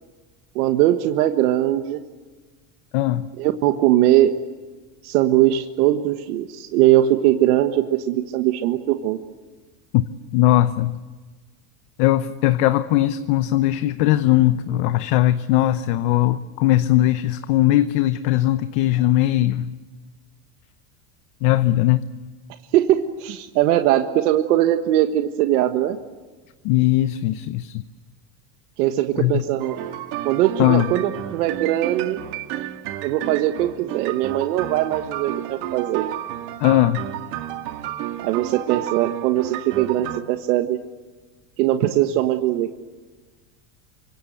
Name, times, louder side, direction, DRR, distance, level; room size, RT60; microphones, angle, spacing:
voice 1, 0.5-2.0 3.4-4.3 5.0-9.2 22.7-26.0 28.8-29.8 30.2-32.2 33.0-36.0 38.2-40.8 41.6-42.8, right 13 dB, 80° right, 7 dB, 1.6 m, -20 dB
voice 2, 2.9-3.3 9.9-10.0 10.3-11.0 12.0-19.7 21.4-22.0 26.6-27.7 29.2-29.4 30.6-30.9 36.6-37.0, left 15 dB, 50° left, 11 dB, 0.9 m, -19 dB
sound 1, 29.6-40.2, right 13 dB, 45° right, 1.9 m, -31 dB
28.0 x 25.0 x 8.1 m, 1.3 s
cardioid pair, 170°, 45 cm